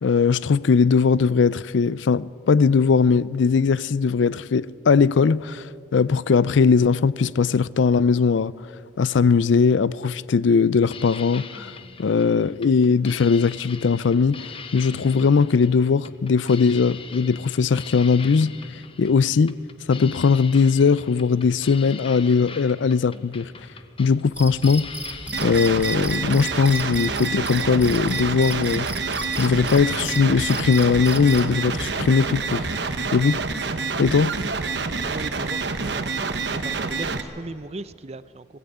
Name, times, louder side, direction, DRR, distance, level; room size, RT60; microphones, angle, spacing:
voice 1, 0.0-8.5 9.0-11.7 12.0-18.5 19.0-19.6 19.9-23.5 24.0-24.9 25.4-28.9 29.4-32.7 33.1-33.4 34.0-34.4, left 5 dB, 80° left, 0.4 m, -19 dB
sound 1, 10.8-26.1, left 5 dB, 30° left, 0.9 m, -42 dB
Cricket, 24.3-31.5, right 2 dB, 10° right, 1.1 m, -36 dB
sound 2, 25.3-37.2, right 4 dB, 65° right, 1.2 m, -27 dB
voice 2, 34.5-38.5, right 2 dB, 35° right, 0.5 m, -38 dB
22.0 x 15.5 x 8.5 m
head